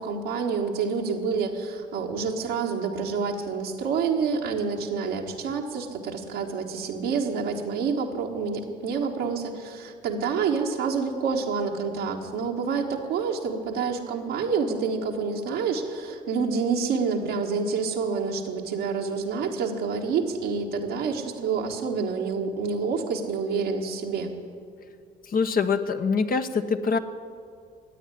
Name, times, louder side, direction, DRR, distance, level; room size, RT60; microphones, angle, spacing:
voice 1, 0.0-24.3, right 5 dB, 75° right, -1 dB, 1.5 m, -28 dB
voice 2, 25.3-27.0, left 5 dB, 45° left, 7 dB, 1.0 m, -24 dB
14.5 x 9.2 x 9.9 m, 2.2 s
hypercardioid pair, 55°, 20 cm